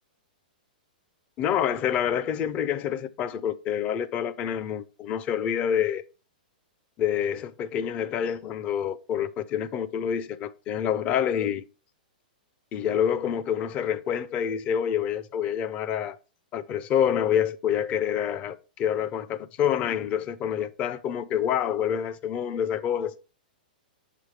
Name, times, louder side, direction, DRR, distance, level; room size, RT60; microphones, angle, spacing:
voice 1, 1.4-6.0 7.0-11.6 12.7-16.2 16.5-23.1, left 9 dB, 25° left, 0.5 m, -27 dB
7.4 x 5.0 x 3.2 m
hypercardioid pair, 155°, 5 cm